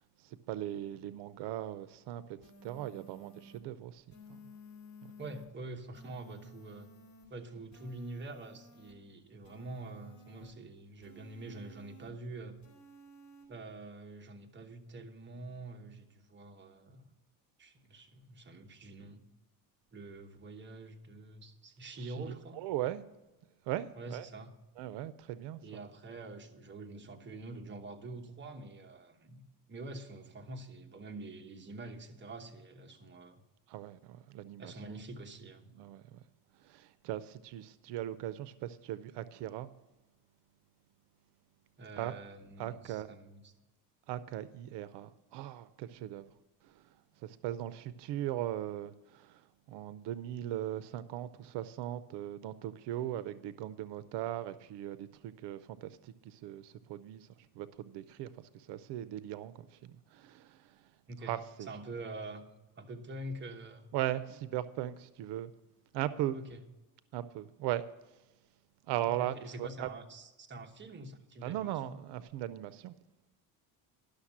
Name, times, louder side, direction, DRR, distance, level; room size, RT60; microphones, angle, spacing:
voice 1, 0.2-4.0 4.3-4.5 5.0-5.1 21.9-22.2 22.5-23.0 23.6-24.3 24.8-25.6 33.7-34.7 35.7-36.2 36.6-39.7 42.0-42.1 42.6-43.1 44.1-46.3 46.6-46.9 47.2-60.8 61.2-61.7 63.9-65.5 65.9-66.4 67.1-67.8 68.9-69.9 71.4-72.9, right 13 dB, 80° right, 0.6 m, -39 dB
sound 1, 2.4-3.6 4.1-5.5 5.9-7.3 7.7-8.9 9.4-10.5 11.0-12.1 12.6-13.4, left 1 dB, 40° left, 3.3 m, -55 dB
voice 2, 5.2-6.9 7.3-12.6 13.5-17.1 17.6-19.2 19.9-22.6 23.9-24.5 25.6-33.4 34.6-35.6 41.8-43.5 61.1-61.4 61.7-62.4 62.8-63.9 66.3-66.6 69.0-72.0, right 2 dB, 25° right, 1.1 m, -46 dB
11.5 x 6.5 x 7.2 m
cardioid pair, 130°, 41 cm